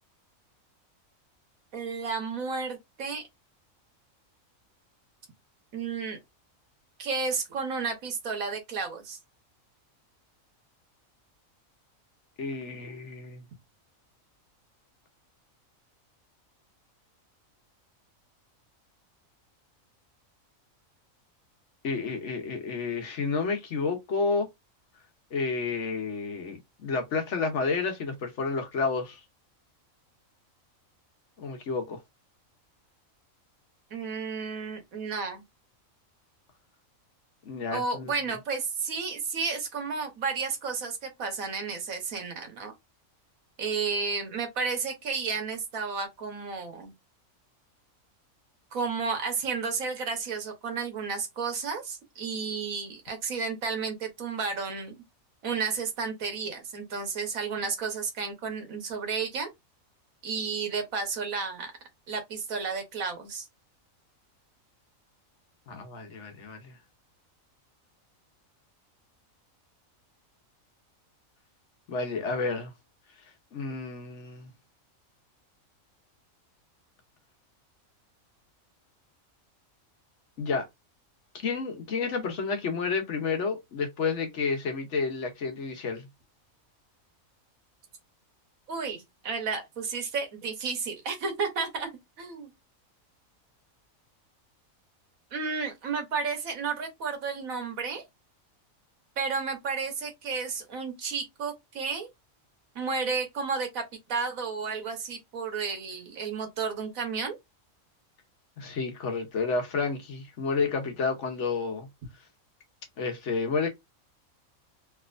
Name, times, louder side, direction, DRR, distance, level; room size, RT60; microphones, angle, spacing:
voice 1, 1.7-3.2 5.7-6.2 7.0-9.2 33.9-35.4 37.7-42.7 43.6-46.9 48.7-54.9 55.4-59.5 60.2-61.7 62.1-63.5 88.7-91.9 92.2-92.5 95.3-98.0 99.2-102.1 102.7-103.8 104.1-107.4, right 5 dB, 85° right, 1.5 m, -32 dB
voice 2, 12.4-13.4 21.8-24.5 25.3-29.2 31.4-32.0 37.5-38.1 65.7-66.7 71.9-72.7 73.5-74.5 80.4-80.7 81.4-86.1 108.6-111.9 113.0-113.7, left 4 dB, 60° left, 1.1 m, -30 dB
3.4 x 2.9 x 2.4 m
omnidirectional pair, 1.4 m